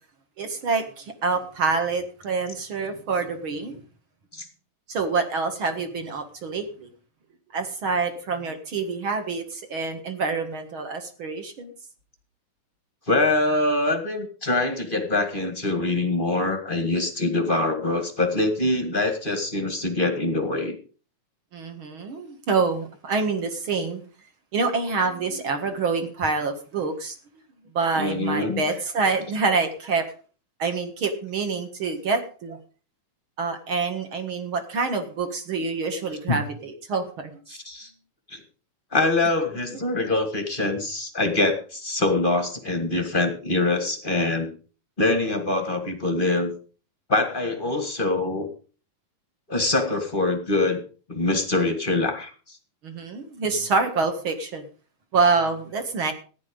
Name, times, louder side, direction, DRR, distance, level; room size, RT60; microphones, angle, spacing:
voice 1, 0.4-3.8 4.9-6.9 7.5-11.7 21.5-24.0 24.5-27.2 27.7-30.1 30.6-32.6 33.4-37.3 39.7-39.8 52.8-54.6 55.1-56.1, right 4 dB, 45° right, 7 dB, 2.0 m, -26 dB
voice 2, 13.1-20.8 27.9-28.6 36.3-36.4 37.5-37.9 38.3-38.4 38.9-44.5 45.0-46.5 47.1-48.5 49.5-50.8 51.1-52.3, left 2 dB, 30° left, 6 dB, 1.0 m, -24 dB
14.5 x 10.5 x 5.2 m, 0.38 s
omnidirectional pair, 3.9 m